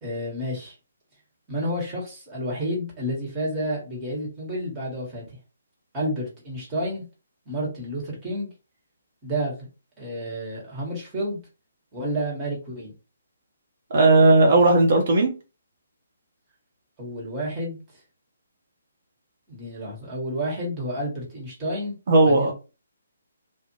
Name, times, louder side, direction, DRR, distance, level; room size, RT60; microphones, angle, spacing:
voice 1, 0.0-0.7 1.5-5.2 5.9-7.0 7.5-8.5 9.2-9.5 10.0-11.4 11.9-12.9 17.0-17.8 19.5-22.5, equal, 20° right, -3 dB, 1.2 m, -30 dB
voice 2, 13.9-15.3 22.1-22.5, right 2 dB, 50° right, 1 dB, 0.7 m, -16 dB
2.5 x 2.1 x 3.0 m, 0.31 s
figure-of-eight pair, 135°, 0 cm